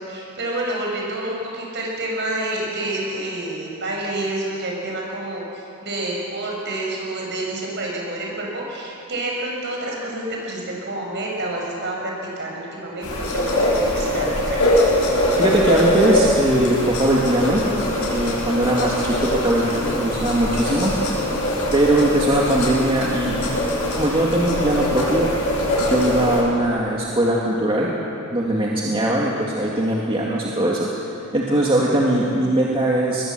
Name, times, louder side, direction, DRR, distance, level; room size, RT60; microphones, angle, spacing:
voice 1, 0.0-14.6, right 1 dB, 55° right, -2 dB, 6.9 m, -28 dB
sound 1, 13.0-26.4, left 1 dB, 90° left, 6.4 m, -22 dB
voice 2, 15.4-20.9 21.7-23.5 23.9-25.3 25.8-27.9 28.3-30.9 31.3-33.3, right 1 dB, 25° right, -4 dB, 2.2 m, -20 dB
23.5 x 21.0 x 7.7 m, 2.7 s
head